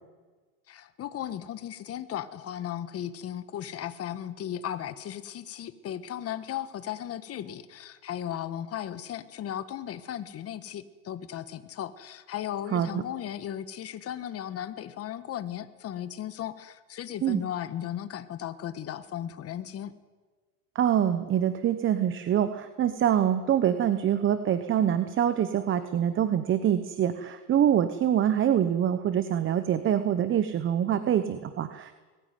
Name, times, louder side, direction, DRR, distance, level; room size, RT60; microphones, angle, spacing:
voice 1, 0.7-19.9, left 10 dB, 30° left, 12 dB, 1.5 m, -36 dB
voice 2, 20.7-31.9, right 10 dB, 25° right, 11 dB, 1.0 m, -25 dB
21.5 x 15.0 x 9.5 m, 1.3 s
supercardioid pair, 115°, 46 cm